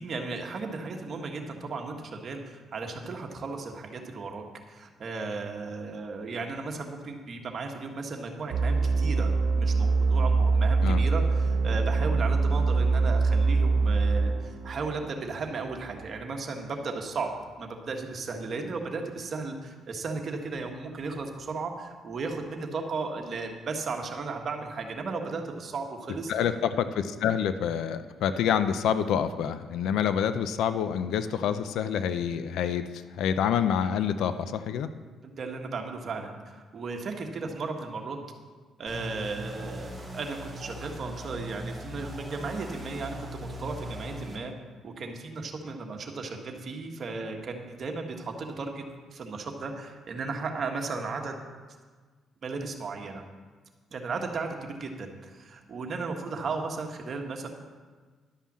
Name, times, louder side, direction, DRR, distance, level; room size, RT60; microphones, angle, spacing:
voice 1, 0.0-17.3 17.6-26.3 35.2-38.2 38.8-44.5 44.8-48.8 49.1-51.3 52.4-53.2 53.9-57.5, right 4 dB, 50° right, 3 dB, 1.4 m, -35 dB
sound 1, 8.5-16.0, right 4 dB, 85° right, 1.2 m, -24 dB
voice 2, 26.3-32.8 33.2-34.9, left 8 dB, 80° left, 11 dB, 0.5 m, -27 dB
sound 2, 38.9-44.4, equal, ahead, 3.0 m, -40 dB
11.5 x 5.6 x 7.4 m, 1.4 s
cardioid pair, 90°, 0 cm